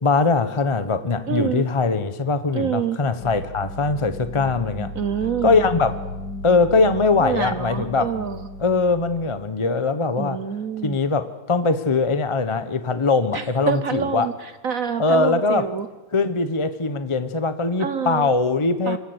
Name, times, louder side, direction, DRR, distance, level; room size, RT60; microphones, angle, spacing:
voice 1, 0.0-4.9 5.4-5.9 6.4-8.1 8.6-10.4 10.8-14.3 15.0-15.7 16.1-19.0, left 3 dB, 30° left, 11 dB, 0.6 m, -21 dB
voice 2, 1.3-1.6 2.5-3.0 5.0-5.6 7.2-8.4 10.2-11.0 13.3-14.3 14.6-15.9 17.8-18.3 18.9-19.0, right 7 dB, 55° right, 11 dB, 1.2 m, -26 dB
sound 1, 3.2-9.4, left 2 dB, 85° left, 1.7 m, -35 dB
26.0 x 17.5 x 8.0 m, 1.1 s
omnidirectional pair, 1.9 m